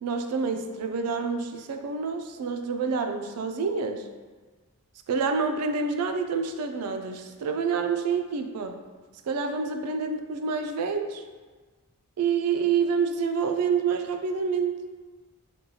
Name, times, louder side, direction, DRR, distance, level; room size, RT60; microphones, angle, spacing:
voice 1, 0.0-4.1 5.1-8.8 9.3-11.2 12.2-14.8, right 5 dB, 85° right, 6 dB, 0.4 m, -28 dB
5.2 x 2.3 x 2.8 m, 1.3 s
head